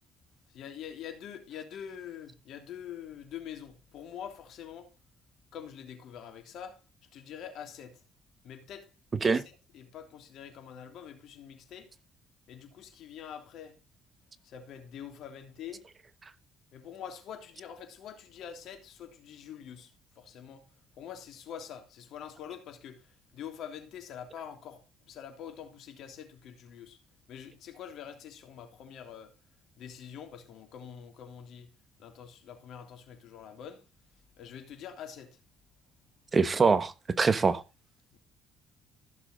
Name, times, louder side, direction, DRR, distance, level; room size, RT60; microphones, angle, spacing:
voice 1, 0.5-4.9 5.5-6.8 7.1-8.0 8.4-8.9 9.2-11.9 12.5-13.8 14.4-15.9 16.7-20.7 21.0-27.0 27.3-29.3 29.8-31.7 32.0-33.9 34.4-35.4 38.1-38.2, left 8 dB, 70° left, 3.2 m, -45 dB
voice 2, 36.3-37.6, right 4 dB, 35° right, 1.2 m, -24 dB
15.0 x 7.1 x 3.9 m
hypercardioid pair, 60°, 0 cm